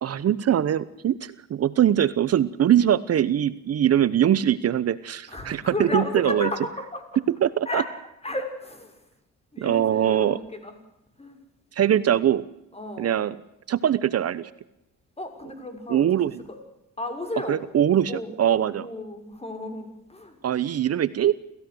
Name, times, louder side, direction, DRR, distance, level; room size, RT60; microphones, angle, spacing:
voice 1, 0.0-6.5 7.3-7.8 9.6-10.4 11.7-12.4 13.0-13.4 13.7-14.5 15.9-16.4 17.5-18.9 20.4-21.3, right 10 dB, 55° right, 16 dB, 0.9 m, -22 dB
voice 2, 5.3-7.0 7.6-7.8 8.2-8.9 9.5-10.7 11.2-11.4 12.7-13.3 15.2-16.1 17.0-17.6 18.1-20.4, left 1 dB, 20° left, 7 dB, 6.2 m, -33 dB
sound 1, 14.3-14.5 16.0-16.7 17.5-18.1, left 1 dB, 60° left, 7.4 m, -52 dB
27.5 x 16.0 x 7.9 m, 0.86 s
cardioid pair, 90°, 30 cm